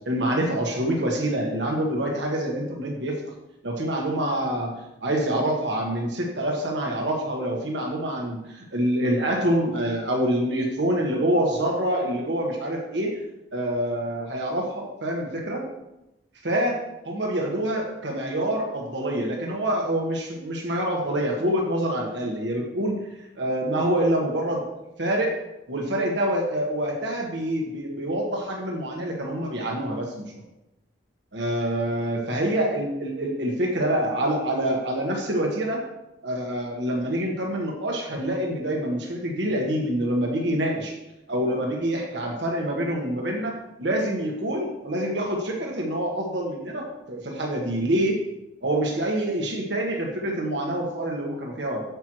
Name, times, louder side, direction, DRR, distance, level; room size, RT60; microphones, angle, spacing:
voice 1, 0.0-3.2 3.6-4.7 5.0-13.2 13.5-15.6 16.4-16.7 17.1-23.0 23.4-25.3 25.7-30.2 31.3-35.8 36.2-40.9 41.3-48.2 48.6-51.8, right 1 dB, 85° right, 0 dB, 1.4 m, -26 dB
8.5 x 7.5 x 3.1 m, 0.91 s
head